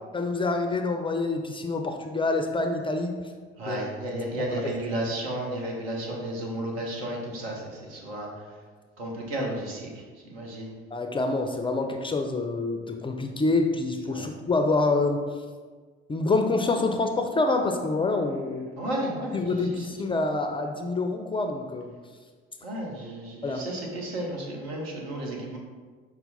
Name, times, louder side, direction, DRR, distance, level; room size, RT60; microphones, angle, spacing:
voice 1, 0.1-3.1 3.6-3.8 4.4-4.7 10.9-15.2 16.1-18.7 19.3-21.9 23.4-23.7, left 3 dB, 15° left, 4 dB, 0.4 m, -26 dB
voice 2, 3.6-8.3 9.0-9.9 10.2-10.7 14.1-14.3 18.8-19.4 19.7-19.9 22.6-25.6, right 1 dB, 75° right, -1 dB, 0.8 m, -33 dB
5.5 x 2.0 x 4.0 m, 1.5 s
figure-of-eight pair, 55°, 31 cm